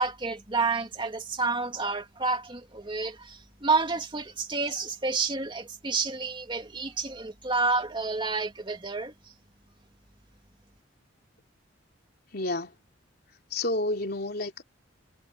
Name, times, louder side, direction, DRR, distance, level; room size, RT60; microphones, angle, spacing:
voice 1, 0.0-9.1, right 4 dB, 25° right, 2.6 m, -29 dB
voice 2, 12.3-12.8 13.5-14.6, left 2 dB, 55° left, 3.5 m, -30 dB
head